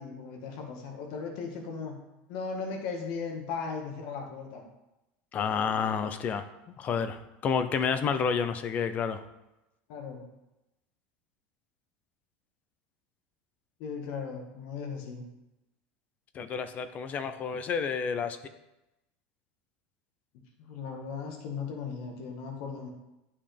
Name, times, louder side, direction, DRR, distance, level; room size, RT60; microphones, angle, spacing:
voice 1, 0.0-2.0 2.3-4.6 9.9-10.2 13.8-15.2 20.6-22.9, left 5 dB, 65° left, 2 dB, 1.7 m, -37 dB
voice 2, 5.3-6.5 6.8-9.2 16.3-18.4, left 6 dB, 30° left, 11 dB, 0.6 m, -30 dB
10.0 x 5.4 x 3.4 m, 0.93 s
supercardioid pair, 140°, 5 cm